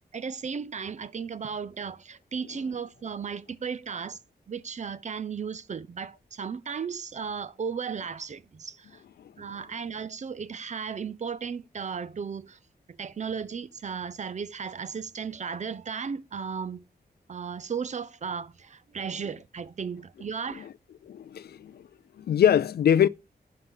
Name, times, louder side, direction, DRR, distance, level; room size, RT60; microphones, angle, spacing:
voice 1, 0.1-4.2 4.5-8.9 9.4-12.6 13.0-16.8 17.3-20.7, right 6 dB, 45° right, 0.5 m, -35 dB
voice 2, 21.1-21.8 22.2-23.1, left 9 dB, 75° left, 0.4 m, -23 dB
10.5 x 4.6 x 3.7 m
wide cardioid pair, 100°, 17 cm